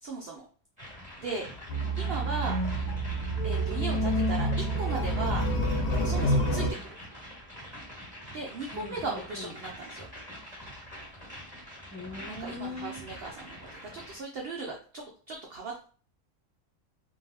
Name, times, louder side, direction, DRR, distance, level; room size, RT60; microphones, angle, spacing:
voice 1, 0.0-0.4 1.2-1.5 2.0-2.6 3.4-5.5 5.9-6.7 8.3-10.1 12.2-15.9, right 3 dB, 75° right, 0 dB, 0.5 m, -37 dB
sound 1, 0.8-14.2, equal, 5° right, 1.7 m, -45 dB
sound 2, 1.7-6.7, right 1 dB, 65° left, 0.4 m, -28 dB
voice 2, 1.8-2.2 8.7-9.5 11.9-13.0, left 2 dB, 15° left, -6 dB, 0.8 m, -41 dB
3.8 x 2.7 x 2.8 m, 0.41 s
omnidirectional pair, 1.7 m